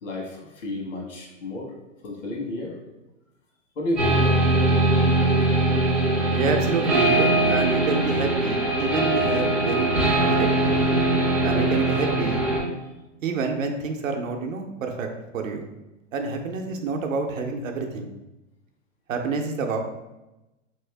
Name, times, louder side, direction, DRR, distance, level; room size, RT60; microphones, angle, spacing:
voice 1, 0.0-1.7 2.0-2.8 3.7-4.3, left 2 dB, 70° left, -1 dB, 1.3 m, -31 dB
sound 1, 4.0-12.6, right 2 dB, ahead, 0.3 m, -21 dB
voice 2, 6.3-9.9 10.2-10.6 11.4-12.4 13.2-15.1 15.3-15.7 16.1-18.1 19.1-19.8, right 4 dB, 85° right, 4 dB, 0.7 m, -28 dB
3.0 x 2.7 x 3.3 m, 0.99 s
hypercardioid pair, 145°, 38 cm